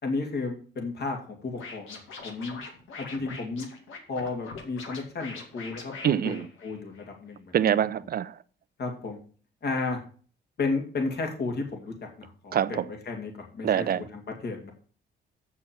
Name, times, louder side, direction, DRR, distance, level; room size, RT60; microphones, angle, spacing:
voice 1, 0.0-2.6 3.0-3.7 4.1-7.7 8.8-9.2 9.6-10.0 10.6-14.7, left 3 dB, 55° left, 2.6 m, -33 dB
Scratching (performance technique), 1.6-7.0, left 4 dB, 85° left, 2.1 m, -43 dB
voice 2, 6.0-6.4 7.5-8.3 12.5-12.9 13.6-14.0, right 9 dB, 50° right, 0.6 m, -25 dB
7.7 x 6.1 x 7.1 m
cardioid pair, 90°, 20 cm